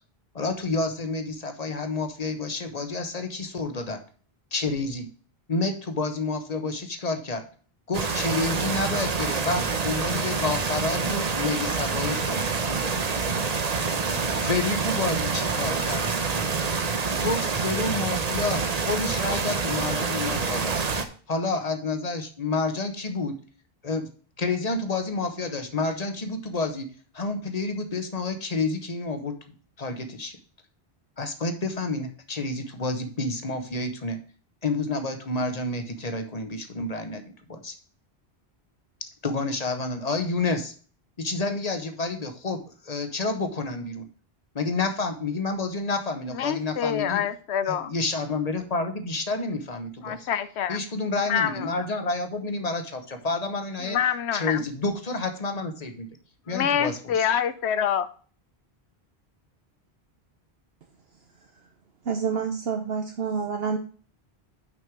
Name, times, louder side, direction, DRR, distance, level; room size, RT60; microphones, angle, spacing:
voice 1, 0.3-4.0 4.5-5.1 5.5-7.4 7.9-12.8 14.4-16.0 17.2-20.7 21.3-23.3 23.8-24.1 24.4-26.9 27.1-29.3 29.8-30.4 31.2-34.2 34.6-37.7 39.2-40.7 41.2-44.0 44.5-47.2 47.7-50.3 50.7-54.0 54.3-56.1 56.5-57.3, left 3 dB, 40° left, 7 dB, 1.1 m, -29 dB
sound 1, 7.9-21.0, right 4 dB, 40° right, 0.9 m, -27 dB
voice 2, 46.3-47.9 50.0-50.8 51.3-51.9 53.8-54.6 56.5-58.1, left 8 dB, 85° left, 13 dB, 1.0 m, -26 dB
voice 3, 62.0-63.8, right 6 dB, 70° right, 4 dB, 1.0 m, -28 dB
6.2 x 5.4 x 6.2 m, 0.42 s
omnidirectional pair, 1.1 m